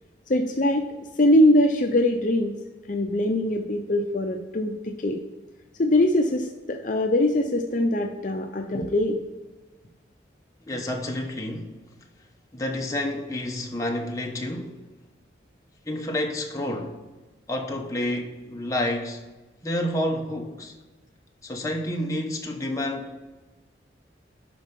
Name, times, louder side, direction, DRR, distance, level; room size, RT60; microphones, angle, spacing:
voice 1, 0.3-0.9 1.2-2.6 2.9-5.2 5.8-9.2, left 1 dB, 45° left, 0.6 m, -22 dB
voice 2, 10.7-11.7 12.5-14.8 15.9-17.0 17.5-19.2 19.6-20.7 21.4-23.2, left 1 dB, 20° left, 1.0 m, -29 dB
11.5 x 4.6 x 5.3 m
head